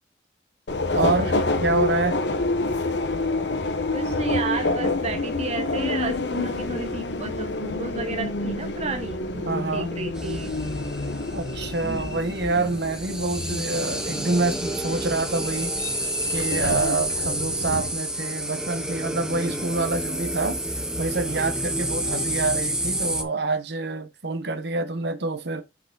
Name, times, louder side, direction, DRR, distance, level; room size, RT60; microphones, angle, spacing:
Subway metro underground, 0.7-17.9, left 2 dB, 70° left, 0.9 m, -28 dB
voice 1, 0.9-1.3 1.6-2.2 9.4-9.9 11.3-15.7 16.3-25.6, right 3 dB, 70° right, 1.1 m, -27 dB
voice 2, 3.9-10.5 11.8-12.2, right 3 dB, 40° right, 1.0 m, -32 dB
The Dark Rite, 10.1-23.2, right 1 dB, 5° right, 0.8 m, -30 dB
sound 1, 14.1-23.3, left 2 dB, 35° left, 1.3 m, -44 dB
6.3 x 4.8 x 3.8 m
head